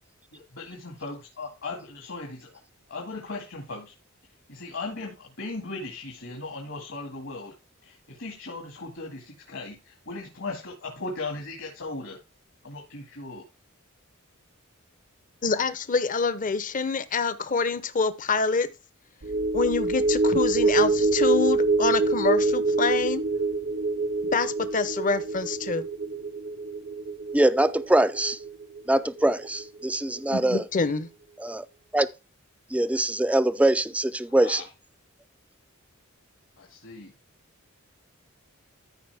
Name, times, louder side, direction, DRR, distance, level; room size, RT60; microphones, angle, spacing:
voice 1, 0.3-2.5 2.9-3.9 4.5-7.5 7.8-12.2 12.6-13.4 34.3-34.7 36.6-37.1, left 3 dB, 65° left, 2.1 m, -37 dB
voice 2, 15.4-18.7 19.5-23.2 24.3-25.9 30.3-31.1, left 4 dB, 40° left, 0.8 m, -26 dB
sound 1, 19.2-29.8 30.2-30.3, right 3 dB, 50° right, 0.7 m, -26 dB
voice 3, 27.3-28.4 28.9-30.6 31.4-31.7 31.9-32.1 32.7-34.6, right 1 dB, 5° right, 0.5 m, -23 dB
13.0 x 5.1 x 3.5 m
head